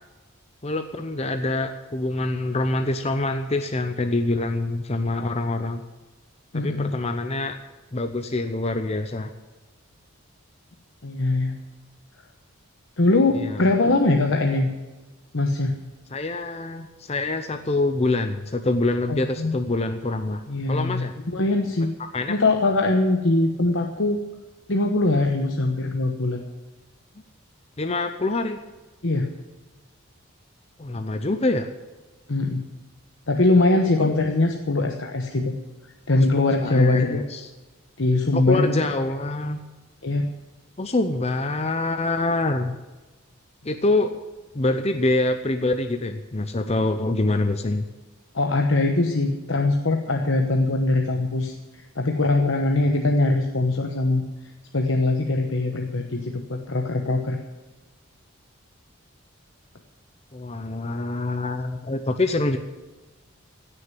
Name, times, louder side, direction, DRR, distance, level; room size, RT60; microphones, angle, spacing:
voice 1, 0.6-5.8 6.5-7.6 7.9-9.3 13.3-13.6 16.1-20.4 20.7-21.1 22.1-22.4 27.8-28.6 30.8-31.7 34.0-34.2 36.2-37.5 38.3-39.6 40.8-42.7 43.6-44.1 44.5-47.8 60.3-62.6, left 2 dB, 30° left, 7 dB, 0.7 m, -25 dB
voice 2, 6.5-6.9 11.0-11.6 13.0-14.7 15.3-15.7 19.1-19.5 20.5-21.9 22.3-24.2 24.7-26.5 29.0-29.4 32.3-32.6 33.3-35.5 36.1-37.2 38.0-38.9 40.0-40.3 48.3-54.2 54.7-57.4, left 2 dB, 60° left, 2 dB, 1.1 m, -22 dB
16.5 x 6.7 x 9.1 m, 1.2 s
head